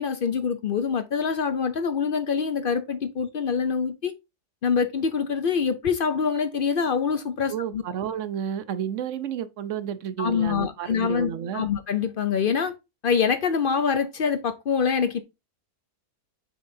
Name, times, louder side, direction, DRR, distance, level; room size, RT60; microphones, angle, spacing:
voice 1, 0.0-4.1 4.6-7.8 10.2-12.7 13.0-15.2, left 6 dB, 65° left, 0.5 m, -25 dB
voice 2, 7.5-11.6, right 8 dB, 60° right, 1.0 m, -31 dB
6.9 x 6.3 x 2.7 m
omnidirectional pair, 1.6 m